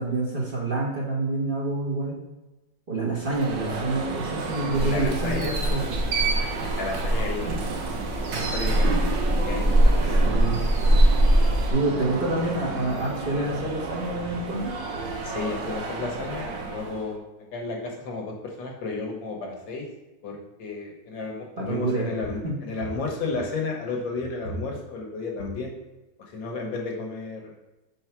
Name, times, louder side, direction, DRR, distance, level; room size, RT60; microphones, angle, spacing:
voice 1, 0.0-2.2 2.9-6.0 10.1-10.6 11.7-14.7 21.6-22.1 22.4-22.6, right 2 dB, 35° right, -5 dB, 1.2 m, -27 dB
Alarm, 3.2-17.1, right 4 dB, 85° right, 1.6 m, -32 dB
voice 2, 4.7-5.6 6.8-7.7 8.3-9.2 9.5-9.8 10.0-10.3 15.2-17.2 17.5-19.8 20.2-25.7 26.2-27.5, left 3 dB, 85° left, 0 dB, 1.8 m, -33 dB
sound 1, 4.7-11.7, right 1 dB, 50° right, 0.5 m, -22 dB
4.7 x 4.3 x 5.8 m, 1.1 s
omnidirectional pair, 2.0 m